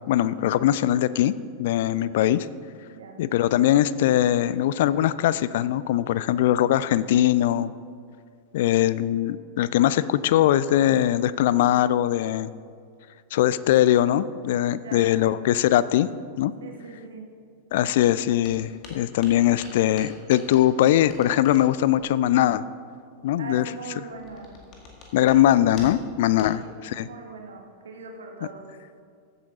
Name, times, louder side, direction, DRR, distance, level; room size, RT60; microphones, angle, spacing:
voice 1, 0.1-1.3 1.6-2.5 3.2-7.7 8.5-12.5 13.3-16.1 16.4-16.5 17.7-22.6 23.2-23.6 25.1-27.1, left 12 dB, 55° left, 17 dB, 0.3 m, -21 dB
voice 2, 16.6-17.3 23.4-24.5 26.4-28.8, right 4 dB, 65° right, 2 dB, 1.5 m, -41 dB
sound 1, 18.0-18.1 18.4-22.1 24.1-25.4 25.7-26.1 26.4-26.5, left 4 dB, 35° left, 2.0 m, -46 dB
14.5 x 8.1 x 3.9 m, 2.2 s
figure-of-eight pair, 90°, 0 cm